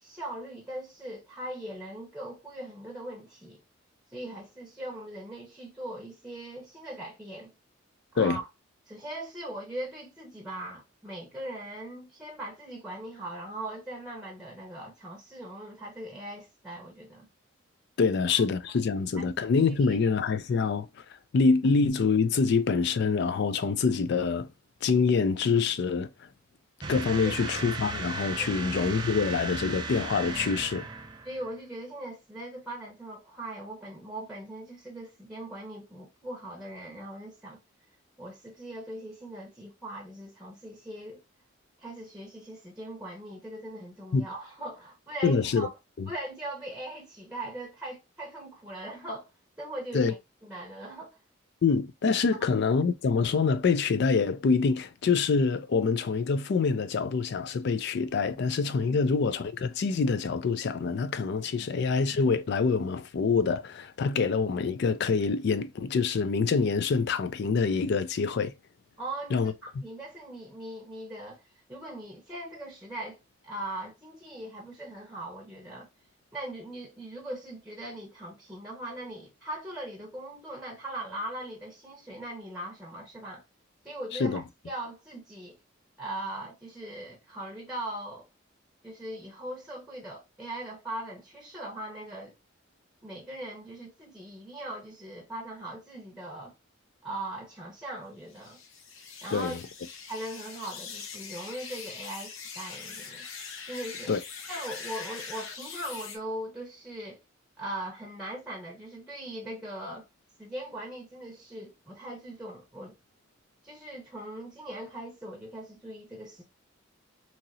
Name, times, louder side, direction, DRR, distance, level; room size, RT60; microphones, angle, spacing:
voice 1, 0.0-3.6 4.1-7.5 8.1-8.5 8.9-17.3 19.2-19.3 19.8-20.0 27.2-27.5 28.4-28.6 31.2-37.6 38.2-41.2 41.8-45.7 46.1-49.3 49.6-50.2 50.4-51.1 61.6-61.7 69.0-71.4 71.7-73.2 73.4-75.9 76.3-83.4 83.8-85.6 86.0-88.3 88.8-92.3 93.0-96.5 97.0-98.6 99.2-99.6 100.1-103.2 103.7-104.1 104.5-107.2 107.6-110.1 110.4-113.0 113.6-116.4, right 1 dB, 5° right, 0.7 m, -40 dB
voice 2, 18.0-20.9 21.3-24.5 24.8-26.1 26.9-30.9 44.1-44.2 45.2-45.7 46.0-46.1 49.9-50.1 51.6-68.5 69.3-69.8 84.2-84.4 99.3-99.6 104.1-104.2, left 5 dB, 55° left, 0.4 m, -26 dB
sound 1, 26.8-31.5, right 3 dB, 20° right, 0.4 m, -36 dB
sound 2, 98.3-106.2, left 5 dB, 85° left, 0.7 m, -42 dB
2.9 x 2.8 x 2.6 m
head